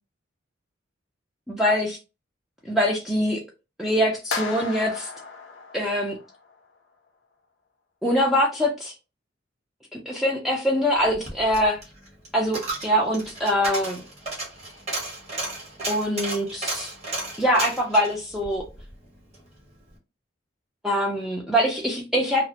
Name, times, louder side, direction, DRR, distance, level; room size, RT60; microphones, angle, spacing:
voice 1, 1.5-2.0 2.7-3.4 3.8-5.1 5.7-6.2 8.0-8.9 9.9-11.8 12.3-14.0 15.9-16.9 17.4-18.6 20.8-22.4, equal, ahead, 0.3 m, -23 dB
sound 1, 4.3-6.5, left 4 dB, 70° left, 0.4 m, -34 dB
Coin (dropping), 11.0-19.5 19.8-19.9, right 2 dB, 35° right, 1.0 m, -34 dB
2.3 x 2.0 x 2.7 m
head